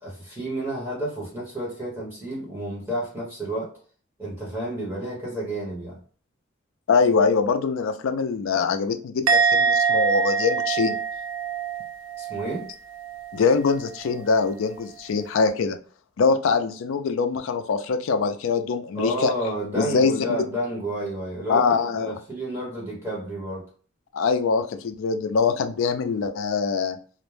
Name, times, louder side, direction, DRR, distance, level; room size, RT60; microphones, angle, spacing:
voice 1, 0.0-3.7 4.2-6.0 12.2-12.7 18.9-23.7, right 1 dB, 15° right, 0.9 m, -31 dB
voice 2, 6.9-11.0 13.3-15.8 16.2-19.3 19.8-20.1 21.5-22.1 24.1-27.0, left 5 dB, 70° left, 0.4 m, -23 dB
Musical instrument, 9.3-12.7 12.9-13.4, right 5 dB, 85° right, 0.4 m, -24 dB
2.4 x 2.1 x 3.1 m
head